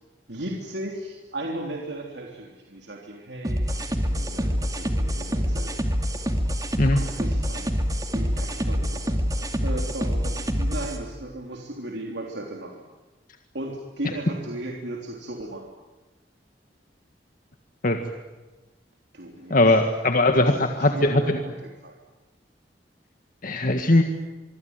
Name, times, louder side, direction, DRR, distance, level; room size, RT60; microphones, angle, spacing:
voice 1, 0.3-5.7 6.9-7.8 8.1-12.8 13.5-15.6 19.1-19.7 20.2-22.0, right 1 dB, 75° right, 0 dB, 3.4 m, -36 dB
sound 1, 3.4-11.0, equal, 20° right, 2.8 m, -26 dB
voice 2, 19.5-21.4 23.4-24.0, left 2 dB, 50° left, 6 dB, 1.9 m, -20 dB
26.0 x 23.5 x 9.5 m, 1.2 s
head